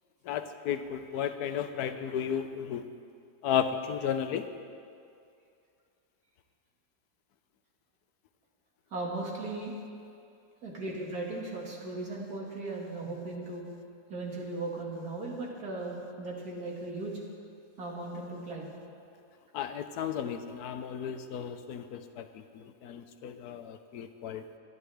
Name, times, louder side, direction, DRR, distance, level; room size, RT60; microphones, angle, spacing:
voice 1, 0.2-2.8 3.4-4.5 19.5-24.4, left 8 dB, 75° left, 8 dB, 1.2 m, -34 dB
voice 2, 8.9-9.7 10.6-13.7 14.1-17.1 17.8-18.7, right 2 dB, 65° right, -3 dB, 2.6 m, -37 dB
28.5 x 9.8 x 3.5 m, 2.4 s
omnidirectional pair, 1.8 m